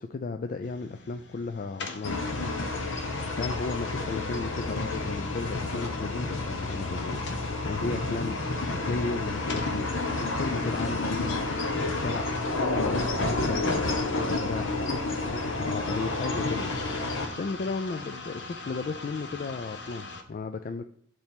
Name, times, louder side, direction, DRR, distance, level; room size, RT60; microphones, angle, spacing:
voice 1, 0.0-2.2 3.3-7.1 7.4-9.9 10.2-12.5 12.7-14.8 15.2-16.7 17.4-20.8, left 4 dB, 45° left, 7 dB, 0.3 m, -34 dB
sound 1, 0.6-20.2, left 3 dB, 60° left, 0.9 m, -44 dB
sound 2, 2.0-17.3, left 2 dB, 85° left, 1.1 m, -30 dB
7.1 x 3.3 x 5.8 m, 0.65 s
head